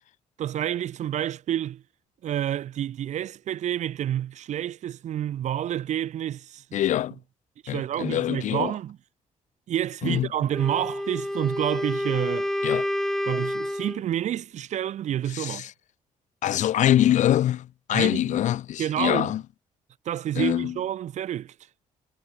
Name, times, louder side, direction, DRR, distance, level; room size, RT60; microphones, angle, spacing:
voice 1, 0.4-1.8 2.2-6.6 7.6-9.0 9.7-12.5 13.3-15.6 17.9-18.2 18.8-19.3 20.0-21.5, right 11 dB, 65° right, 4.6 m, -29 dB
voice 2, 6.7-7.2 7.7-8.7 10.0-10.3 12.6-12.9 15.3-15.7 16.4-19.4 20.4-20.8, left 12 dB, 70° left, 2.3 m, -24 dB
Wind instrument woodwind instrument, 10.5-14.0, left 1 dB, 5° left, 3.2 m, -29 dB
cardioid pair, 150°, 13 cm